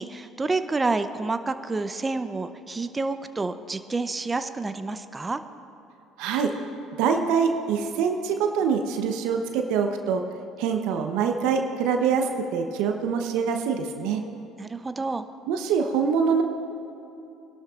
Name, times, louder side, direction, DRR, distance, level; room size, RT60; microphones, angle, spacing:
voice 1, 0.0-5.4 14.6-15.2, right 3 dB, 25° right, 10 dB, 0.6 m, -29 dB
voice 2, 6.2-6.5 7.0-10.2 10.6-14.2 15.5-16.4, right 6 dB, 70° right, 5 dB, 0.8 m, -24 dB
24.0 x 12.0 x 2.4 m, 2.9 s
hypercardioid pair, 60°, 0 cm